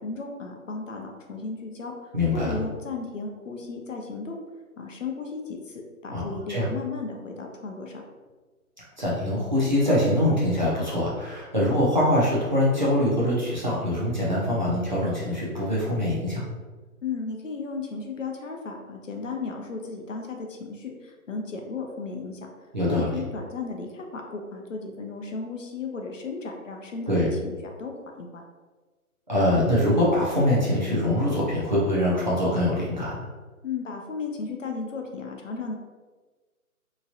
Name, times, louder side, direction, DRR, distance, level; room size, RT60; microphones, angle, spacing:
voice 1, 0.0-1.9 2.3-4.4 4.8-7.9 17.0-22.5 22.9-27.9 28.2-28.4 33.6-35.7, left 4 dB, 60° left, 2 dB, 0.5 m, -35 dB
voice 2, 2.1-2.5 6.1-6.7 9.0-16.4 22.7-23.1 27.1-27.3 29.3-33.3, left 1 dB, 35° right, -7 dB, 0.6 m, -23 dB
3.0 x 2.7 x 2.4 m, 1.3 s
hypercardioid pair, 165°, 44 cm